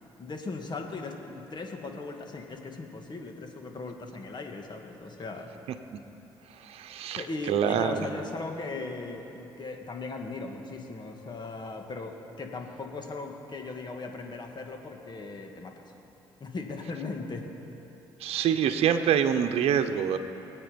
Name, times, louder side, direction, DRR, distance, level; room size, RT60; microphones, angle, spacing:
voice 1, 0.2-5.5 7.2-15.8 16.4-17.5, left 3 dB, 45° left, 3 dB, 2.1 m, -38 dB
voice 2, 6.6-8.1 18.2-20.2, right 8 dB, 70° right, 7 dB, 0.8 m, -26 dB
24.5 x 8.8 x 5.3 m, 3.0 s
supercardioid pair, 60°, 10 cm